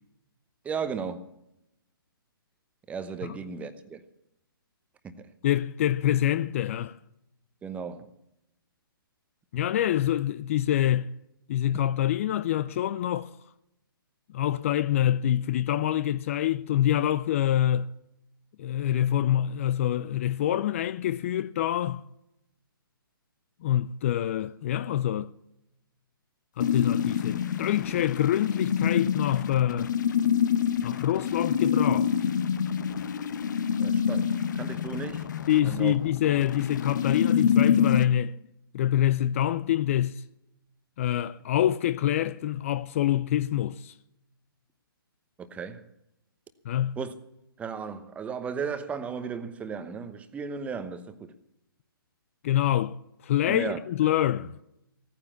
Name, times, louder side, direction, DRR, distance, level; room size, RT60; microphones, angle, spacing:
voice 1, 0.6-1.2 2.9-4.0 5.0-5.3 7.6-8.1 33.8-35.3 35.6-35.9 45.4-45.9 47.0-47.1 47.6-51.3 53.5-53.8, right 6 dB, 10° right, 0.9 m, -35 dB
voice 2, 5.4-7.0 9.5-11.1 11.5-13.4 14.3-17.9 18.6-22.0 23.6-25.3 26.6-29.9 30.8-32.1 35.5-38.3 38.7-40.2 41.0-43.9 46.7-47.0 52.4-53.0 53.2-54.6, left 11 dB, 35° left, 0.5 m, -26 dB
sound 1, 26.6-38.0, left 8 dB, 55° left, 1.0 m, -26 dB
16.5 x 9.7 x 7.1 m
figure-of-eight pair, 130°, 12 cm